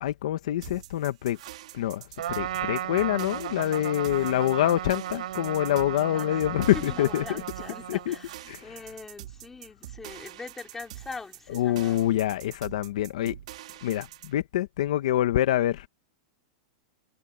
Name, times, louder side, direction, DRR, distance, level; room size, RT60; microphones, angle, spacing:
voice 1, 0.0-1.4 1.7-7.2 7.9-8.2 8.5-8.6 11.5-13.4 13.8-15.9, left 13 dB, 65° left, 1.1 m, -26 dB
sound 1, 0.6-14.3, right 14 dB, 65° right, 3.7 m, -45 dB
Trumpet, 2.2-8.3, right 11 dB, 80° right, 6.0 m, -35 dB
voice 2, 6.0-6.4 6.7-12.0, left 4 dB, 5° left, 2.9 m, -42 dB
supercardioid pair, 175°, 4 cm